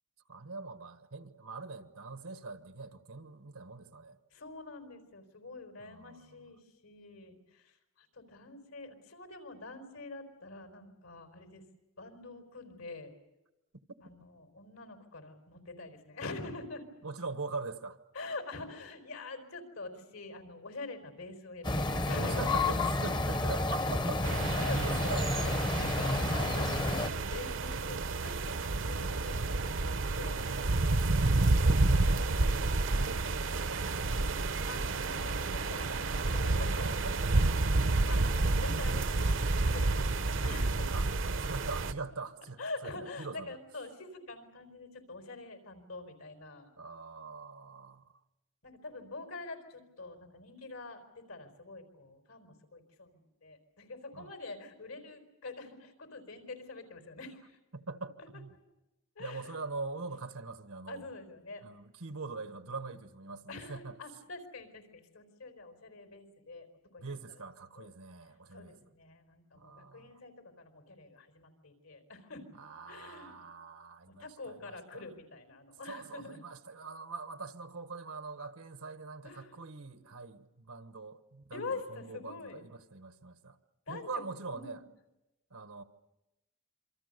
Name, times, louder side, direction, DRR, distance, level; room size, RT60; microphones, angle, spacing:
voice 1, 0.3-4.2 5.8-6.5 17.0-18.0 22.2-25.3 31.6-34.5 36.7-38.6 40.9-41.1 41.4-43.6 46.8-48.0 54.1-54.3 57.7-58.5 59.2-61.1 61.6-64.0 67.0-68.8 69.5-70.2 72.5-75.1 75.9-83.6 83.9-84.8 85.5-85.8, right 3 dB, 90° right, 1.4 m, -43 dB
voice 2, 4.3-11.6 12.0-13.1 14.0-16.8 18.1-22.5 24.5-25.0 25.3-30.4 34.7-37.0 38.1-38.3 38.6-41.0 42.6-46.7 48.6-57.5 59.2-59.6 60.9-61.6 63.5-66.7 66.9-67.1 67.8-67.9 68.5-72.5 72.9-73.4 74.2-76.4 79.2-79.5 81.5-82.6 83.9-84.8, left 3 dB, 80° left, 4.5 m, -45 dB
sound 1, 21.6-27.1, left 2 dB, 20° left, 0.8 m, -30 dB
sound 2, 24.2-41.9, right 2 dB, 60° right, 0.8 m, -30 dB
27.0 x 25.0 x 6.8 m
head